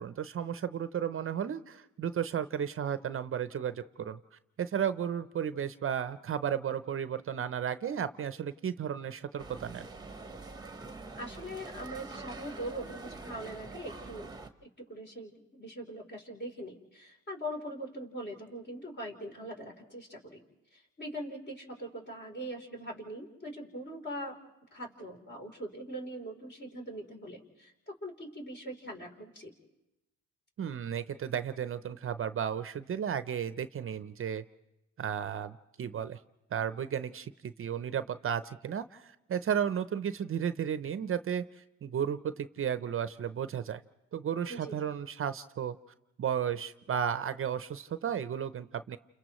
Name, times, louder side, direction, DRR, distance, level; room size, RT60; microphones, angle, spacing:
voice 1, 0.0-4.2 4.6-9.9 30.6-34.4 35.0-36.2 36.5-43.8 44.1-45.8 46.2-49.0, right 8 dB, 45° right, 12 dB, 0.6 m, -34 dB
sound 1, 9.4-14.5, right 3 dB, 15° right, 1.1 m, -45 dB
voice 2, 11.1-14.3 14.6-20.4 20.7-24.4 24.7-29.5 44.5-44.8, right 1 dB, 35° left, 1 dB, 3.7 m, -42 dB
29.5 x 28.5 x 3.1 m, 0.92 s
cardioid pair, 90°, 30 cm